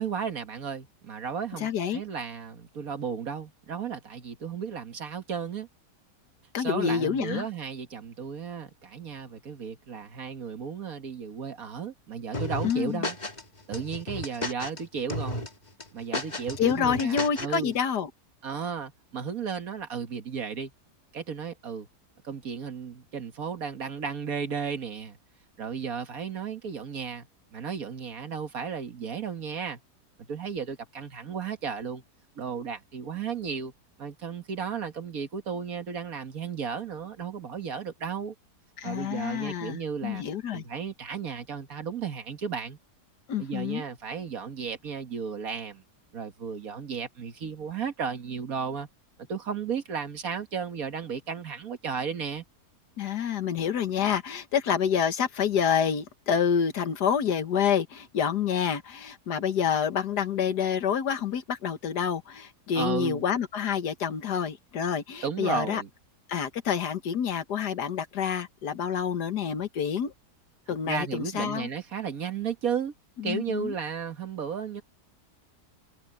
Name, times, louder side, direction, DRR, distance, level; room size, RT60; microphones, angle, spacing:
voice 1, 0.0-5.7 6.6-13.2 13.7-15.5 15.9-17.7 18.4-20.7 21.1-21.9 22.2-25.2 25.6-29.8 30.2-32.0 32.4-33.7 34.0-38.3 38.8-40.2 40.5-42.8 43.4-45.8 46.1-48.9 49.2-52.4 62.7-63.2 65.2-65.9 70.7-72.9 73.2-74.8, right 6 dB, 60° right, 2.0 m, -34 dB
voice 2, 1.6-2.0 6.5-7.5 12.6-13.0 16.6-18.1 38.8-40.7 43.3-43.8 53.0-65.8 66.3-70.1 70.7-71.7 73.2-73.7, left 7 dB, 80° left, 1.9 m, -28 dB
sound 1, 12.3-13.4 13.7-14.8 15.1-15.5 15.8-17.6, left 1 dB, 25° left, 2.1 m, -33 dB
omnidirectional pair, 1.7 m